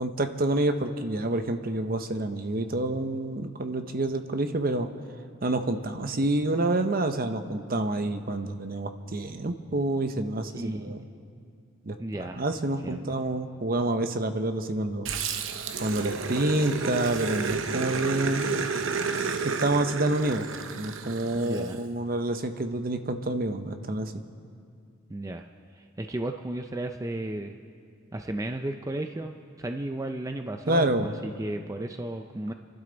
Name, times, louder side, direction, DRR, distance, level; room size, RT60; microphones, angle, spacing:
voice 1, 0.0-4.9 5.4-11.0 11.8-15.1 15.8-18.5 19.4-20.5 20.8-24.1 30.7-31.1, right 2 dB, 45° right, 8 dB, 0.8 m, -28 dB
voice 2, 10.6-10.9 12.0-12.4 12.8-13.2 21.3-21.8 25.1-25.5 25.8-27.5 28.1-32.5, right 1 dB, 15° right, 5 dB, 0.4 m, -34 dB
Growling, 15.1-21.7, right 5 dB, 80° right, 0.8 m, -31 dB
29.5 x 12.0 x 4.0 m, 2.3 s
head